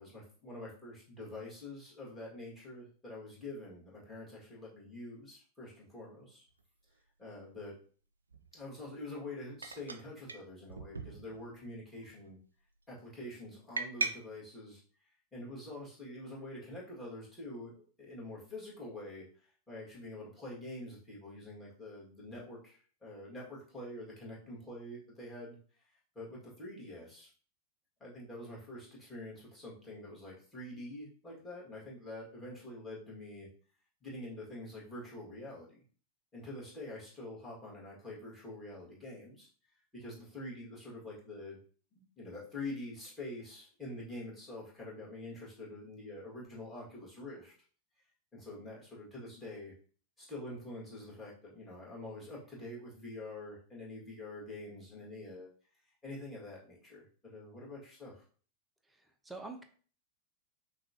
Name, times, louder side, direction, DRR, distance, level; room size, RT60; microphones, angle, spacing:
voice 1, 0.0-6.4 7.2-7.7 8.5-12.4 12.9-25.9 26.1-27.3 28.0-33.5 34.0-35.8 36.3-39.5 39.9-41.6 41.9-47.5 48.3-49.7 50.2-55.5 56.0-58.2, left 1 dB, 15° left, -6 dB, 1.9 m, -46 dB
sound 1, 6.6-6.7 8.3-8.5 9.6-10.0 10.3-10.4 10.7-11.6 11.9-12.3 13.8-14.1, right 3 dB, 75° right, 0.4 m, -38 dB
voice 2, 58.9-59.6, right 3 dB, 5° right, 5 dB, 0.6 m, -46 dB
5.8 x 2.4 x 2.8 m, 0.43 s
figure-of-eight pair, 90°, 0 cm